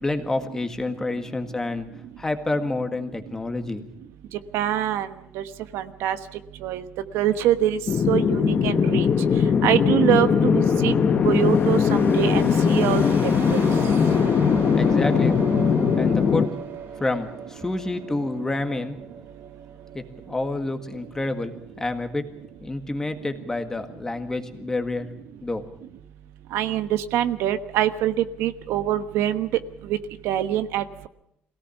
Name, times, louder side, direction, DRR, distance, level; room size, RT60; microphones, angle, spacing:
voice 1, 0.0-1.9 2.2-3.9 14.7-15.4 16.0-16.5 17.0-19.0 19.9-22.2 22.6-25.1 25.4-25.7, left 2 dB, 15° left, 6 dB, 1.8 m, -28 dB
voice 2, 4.5-5.1 5.3-5.4 5.7-6.2 6.6-6.8 7.1-7.8 8.1-9.1 9.6-10.9 11.2-13.7 26.5-28.1 28.4-29.5 29.9-30.0 30.2-31.1, right 11 dB, 85° right, 10 dB, 1.2 m, -24 dB
sound 1, 7.9-16.5, left 6 dB, 40° left, 1.2 m, -20 dB
sound 2, 11.3-22.9, right 7 dB, 65° right, 2.3 m, -39 dB
22.5 x 17.5 x 7.1 m, 0.75 s
cardioid pair, 135°, 4 cm